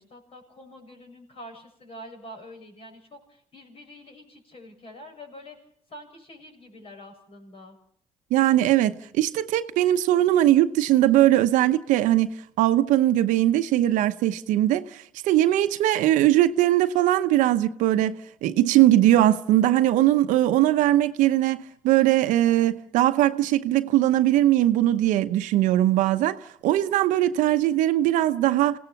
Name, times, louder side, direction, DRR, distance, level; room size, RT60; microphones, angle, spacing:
voice 1, 0.0-5.6 5.9-7.8, equal, 50° left, 7.1 m, -46 dB
voice 2, 8.3-12.3 12.6-28.8, right 13 dB, 85° right, 0.9 m, -20 dB
27.0 x 17.5 x 5.9 m
cardioid pair, 85°, 13 cm